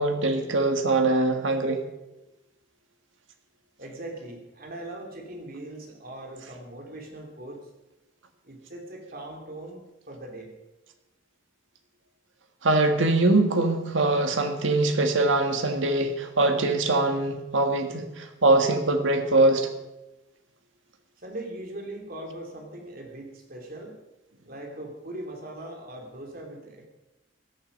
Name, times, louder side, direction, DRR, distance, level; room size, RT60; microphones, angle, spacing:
voice 1, 0.0-1.8 12.6-19.7, right 2 dB, 90° right, 6 dB, 1.7 m, -23 dB
voice 2, 3.8-7.6 8.4-10.5 21.2-24.0 24.4-26.9, right 1 dB, 50° right, 1 dB, 3.1 m, -40 dB
16.5 x 11.5 x 5.3 m, 0.98 s
head